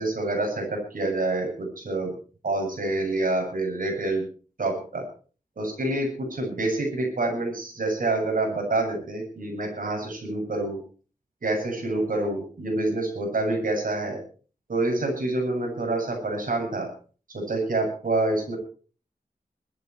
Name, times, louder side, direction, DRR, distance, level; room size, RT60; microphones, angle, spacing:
voice 1, 0.0-2.1 2.4-4.2 4.6-5.0 5.6-10.8 11.4-14.2 14.7-16.9 17.3-18.6, right 2 dB, 65° right, 2 dB, 7.9 m, -27 dB
21.0 x 13.5 x 4.6 m, 0.40 s
wide cardioid pair, 90°, 15 cm